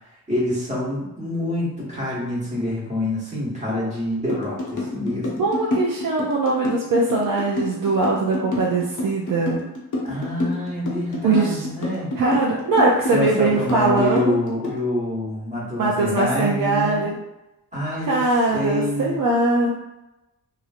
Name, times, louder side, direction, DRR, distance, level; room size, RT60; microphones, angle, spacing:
voice 1, 0.3-5.4 10.0-12.1 13.1-17.1 17.7-18.2 18.5-19.2, left 1 dB, 20° right, -7 dB, 1.2 m, -26 dB
sound 1, 4.3-14.8, left 2 dB, 55° left, 0.8 m, -27 dB
voice 2, 5.4-9.6 11.2-11.7 12.2-14.3 15.8-17.2 18.1-19.7, right 3 dB, 60° right, -2 dB, 0.5 m, -21 dB
3.0 x 2.6 x 2.4 m, 0.96 s
cardioid pair, 115°, 38 cm